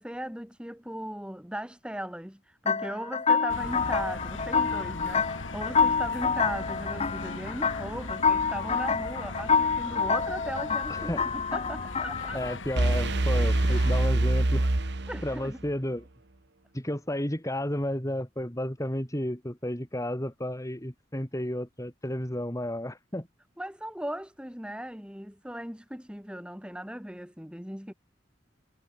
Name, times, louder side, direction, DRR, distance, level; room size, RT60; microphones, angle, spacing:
voice 1, 0.0-12.4 15.1-15.6 23.6-27.9, equal, 5° right, 6.9 m, -38 dB
sound 1, 2.7-12.6, left 5 dB, 35° left, 1.0 m, -27 dB
sound 2, 3.5-14.1, left 2 dB, 85° left, 2.5 m, -39 dB
voice 2, 10.9-11.3 12.3-14.7 15.2-16.1 16.7-23.3, left 1 dB, 15° left, 3.1 m, -32 dB
sound 3, 12.8-15.7, right 1 dB, 65° right, 1.5 m, -25 dB
head